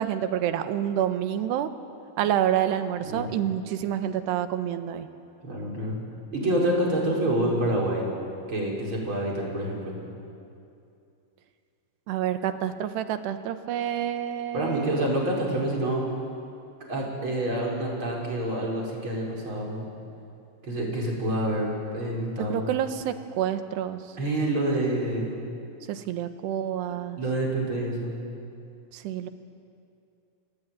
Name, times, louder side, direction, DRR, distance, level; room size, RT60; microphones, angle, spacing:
voice 1, 0.0-1.7 2.2-5.1 12.1-15.1 22.5-24.0 25.9-27.2 28.9-29.3, right 10 dB, 80° right, 9 dB, 3.3 m, -28 dB
voice 2, 5.4-6.0 6.3-8.1 8.5-10.0 14.5-16.0 16.9-19.8 20.6-22.7 24.2-25.4 27.2-28.1, right 1 dB, 30° right, -2 dB, 6.2 m, -27 dB
30.0 x 20.5 x 9.4 m, 2.6 s
omnidirectional pair, 4.8 m